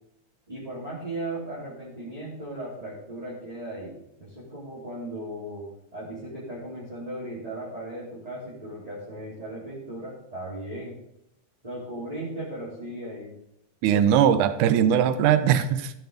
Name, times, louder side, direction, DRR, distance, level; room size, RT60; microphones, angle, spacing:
voice 1, 0.5-11.0 11.6-13.3, right 1 dB, 10° right, -7 dB, 2.7 m, -37 dB
voice 2, 13.8-15.9, right 9 dB, 85° right, 12 dB, 2.1 m, -20 dB
14.5 x 6.1 x 5.1 m, 0.81 s
omnidirectional pair, 3.6 m